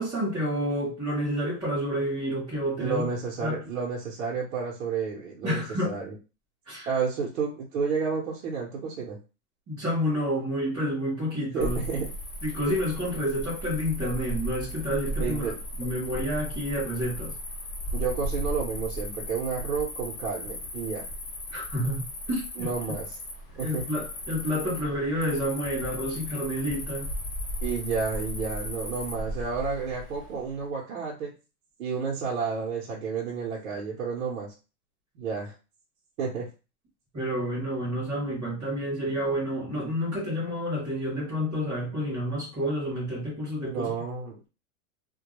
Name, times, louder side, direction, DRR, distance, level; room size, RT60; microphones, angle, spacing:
voice 1, 0.0-3.1 3.4-3.6 5.4-6.0 6.7-7.0 9.7-11.8 12.4-15.4 15.8-17.3 21.5-22.7 23.5-27.1 37.1-43.9, equal, 5° right, -13 dB, 0.3 m, -29 dB
voice 2, 2.8-6.1 6.9-9.2 11.5-12.1 15.2-15.6 17.9-21.0 22.6-23.2 23.6-23.9 27.6-31.3 31.8-34.5 35.1-35.5 36.2-36.5 43.6-44.4, right 5 dB, 70° right, -3 dB, 0.8 m, -31 dB
Cricket, 11.6-30.5, equal, 35° left, 0.6 m, -36 dB
2.2 x 2.1 x 2.9 m, 0.31 s
supercardioid pair, 165°, 42 cm